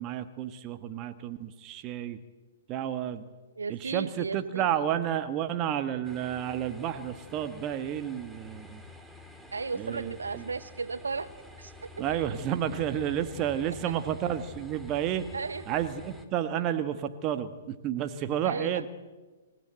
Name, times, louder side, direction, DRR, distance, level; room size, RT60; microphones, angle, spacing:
voice 1, 0.0-2.2 2.7-3.2 3.7-8.8 9.8-10.4 12.0-15.2 15.7-18.9, right 10 dB, 30° right, 8 dB, 1.4 m, -31 dB
voice 2, 3.6-4.7 9.5-11.3 11.6-12.0 13.9-14.0 15.3-15.6 18.4-18.8, right 4 dB, 80° right, 14 dB, 1.0 m, -35 dB
sound 1, 6.0-16.3, left 2 dB, 5° right, 2.1 m, -49 dB
26.5 x 15.5 x 7.8 m, 1.3 s
figure-of-eight pair, 120°, 0 cm